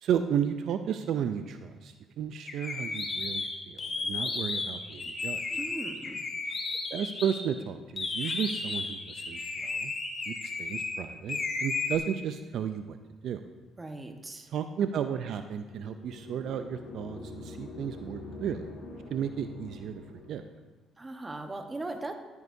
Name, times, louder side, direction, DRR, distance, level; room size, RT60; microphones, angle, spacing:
voice 1, 0.0-5.4 6.9-9.9 10.3-13.0 13.2-13.4 14.5-18.7 19.1-20.0 20.3-20.4, right 8 dB, 70° right, 8 dB, 0.4 m, -33 dB
sound 1, 2.5-7.4 8.0-10.9 11.3-12.0, left 3 dB, 40° left, 1.8 m, -33 dB
voice 2, 5.5-6.2 13.8-14.5 21.0-22.1, right 2 dB, 20° right, 5 dB, 1.1 m, -39 dB
sound 2, 15.7-20.6, left 2 dB, 85° left, 2.3 m, -45 dB
14.0 x 9.6 x 2.7 m, 1.3 s
cardioid pair, 80°, 0 cm